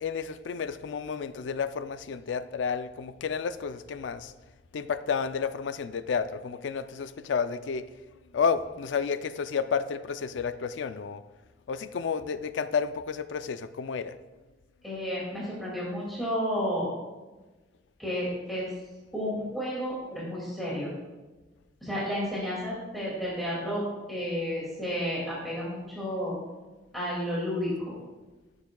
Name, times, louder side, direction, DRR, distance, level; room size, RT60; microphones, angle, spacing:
voice 1, 0.0-4.3 4.7-7.9 8.3-11.2 11.7-14.2, left 6 dB, 90° left, 12 dB, 0.4 m, -31 dB
voice 2, 14.8-16.9 18.0-18.7 19.1-20.9 21.8-23.8 24.1-26.4 26.9-27.9, equal, ahead, -8 dB, 2.2 m, -31 dB
13.0 x 7.1 x 2.3 m, 1.2 s
head